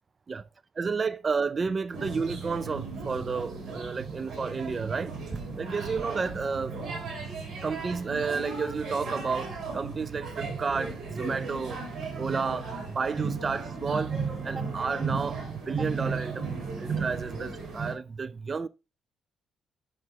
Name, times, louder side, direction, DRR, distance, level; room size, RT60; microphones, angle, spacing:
voice 1, 0.8-6.8 7.6-11.8 12.2-14.2 14.4-16.5 16.8-18.7, right 5 dB, 35° right, 0.3 m, -31 dB
sound 1, 1.9-17.9, right 4 dB, 55° right, 3.4 m, -35 dB
7.5 x 6.0 x 3.3 m
cardioid pair, 90°, 0 cm